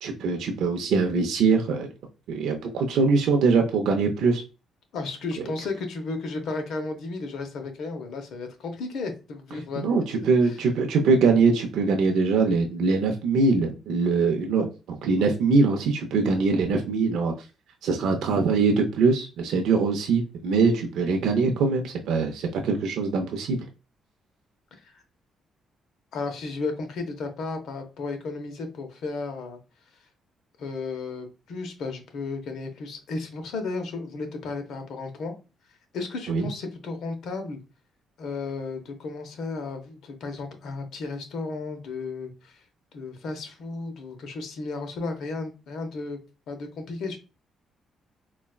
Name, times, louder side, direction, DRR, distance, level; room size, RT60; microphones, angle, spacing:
voice 1, 0.0-1.9 2.3-4.4 9.8-17.3 17.8-23.6 36.3-36.5, right 4 dB, 80° right, 3 dB, 0.5 m, -23 dB
voice 2, 4.9-10.6 24.8-25.0 26.1-29.6 30.6-35.3 35.9-37.6 38.2-42.6 42.9-46.2 46.5-47.2, left 3 dB, 75° left, 5 dB, 0.7 m, -34 dB
4.0 x 2.2 x 2.3 m, 0.30 s
cardioid pair, 90°, 0 cm